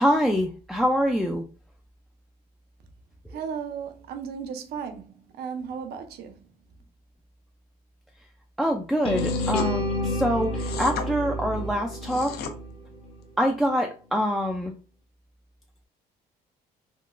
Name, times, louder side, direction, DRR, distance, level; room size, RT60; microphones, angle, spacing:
voice 1, 0.0-1.4 3.3-3.4 8.6-12.4 13.4-14.7, equal, ahead, 0.3 m, -25 dB
voice 2, 3.3-6.4, right 6 dB, 70° right, 0.6 m, -35 dB
sound 1, 9.0-13.1, left 1 dB, 30° left, 0.7 m, -29 dB
sound 2, 9.1-9.7 10.6-11.1 11.9-12.5, left 6 dB, 70° left, 0.6 m, -34 dB
3.7 x 2.2 x 2.4 m
cardioid pair, 110°, 17 cm